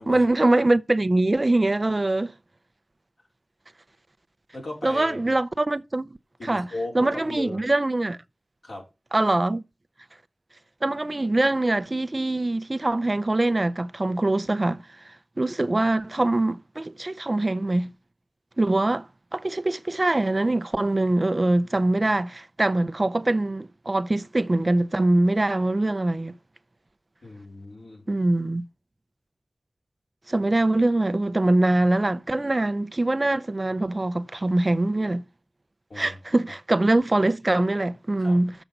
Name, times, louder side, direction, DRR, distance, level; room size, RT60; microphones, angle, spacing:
voice 1, 0.1-2.3 4.8-6.1 6.5-6.7 6.9-8.2 9.1-9.6 10.8-17.9 18.6-19.1 19.3-26.3 28.1-28.6 30.3-35.2 36.0-38.5, right 2 dB, 40° right, 0.6 m, -23 dB
voice 2, 4.5-5.4 6.4-7.6 8.6-8.8 27.2-28.1 35.9-36.2 38.2-38.4, left 2 dB, 75° left, 4.0 m, -37 dB
7.1 x 7.0 x 5.3 m
cardioid pair, 40°, 0 cm